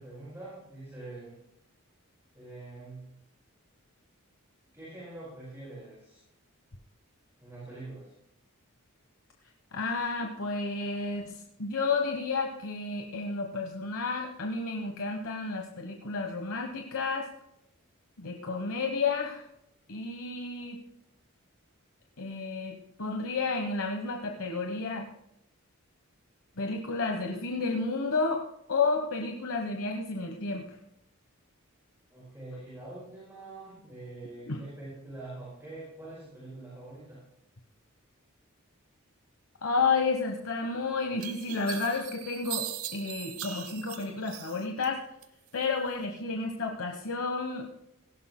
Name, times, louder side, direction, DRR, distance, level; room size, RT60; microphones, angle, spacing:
voice 1, 0.0-1.4 2.3-3.1 4.7-6.2 7.4-8.1 32.1-37.2, right 2 dB, 10° right, -8 dB, 5.1 m, -44 dB
voice 2, 9.7-17.3 18.2-19.4 19.9-20.8 22.2-25.1 26.6-28.4 28.7-30.6 34.5-34.6 39.6-45.0 45.5-47.7, left 4 dB, 70° left, 2 dB, 1.2 m, -31 dB
sound 1, 40.5-40.6 41.2-44.9 45.2-46.0, right 11 dB, 80° right, 1.1 m, -40 dB
18.0 x 16.0 x 2.2 m, 0.79 s
head